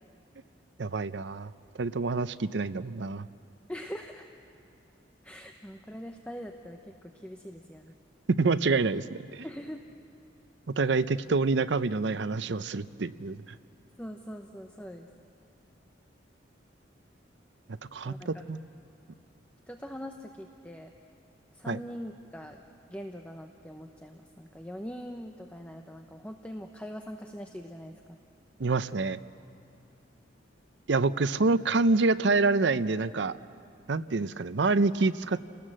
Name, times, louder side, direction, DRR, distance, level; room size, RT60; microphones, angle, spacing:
voice 1, 0.8-1.5 1.8-3.3 8.3-9.5 10.7-13.5 17.9-18.6 21.7-21.8 28.6-29.2 30.9-33.4 33.9-35.4, right 3 dB, 70° right, 14 dB, 0.6 m, -27 dB
voice 2, 3.7-4.3 5.2-7.9 9.4-9.8 14.0-15.1 18.0-18.5 19.7-20.9 21.5-22.6 22.9-28.2, equal, 5° left, 4 dB, 0.8 m, -42 dB
30.0 x 19.0 x 7.6 m, 2.6 s
head